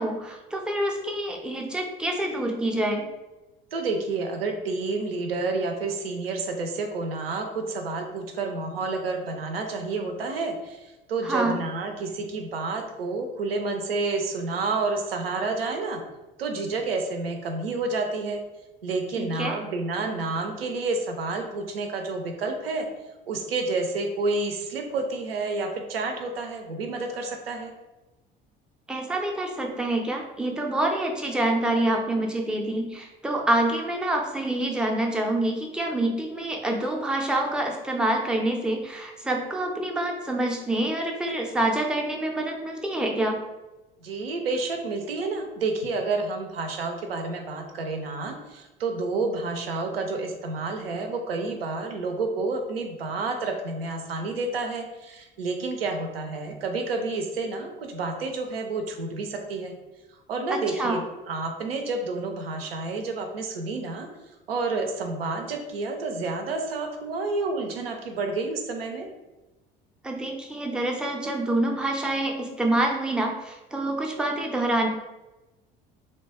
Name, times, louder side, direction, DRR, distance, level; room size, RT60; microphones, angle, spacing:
voice 1, 0.0-3.0 11.2-11.6 19.2-19.6 28.9-43.4 60.5-61.0 70.0-74.9, right 1 dB, 5° right, 1 dB, 0.4 m, -26 dB
voice 2, 3.7-16.0 16.4-18.4 18.8-22.9 23.3-27.7 44.0-59.7 60.3-64.1 64.5-69.1, right 3 dB, 80° right, 4 dB, 0.5 m, -29 dB
2.8 x 2.2 x 2.8 m, 1.0 s
figure-of-eight pair, 60°, 29 cm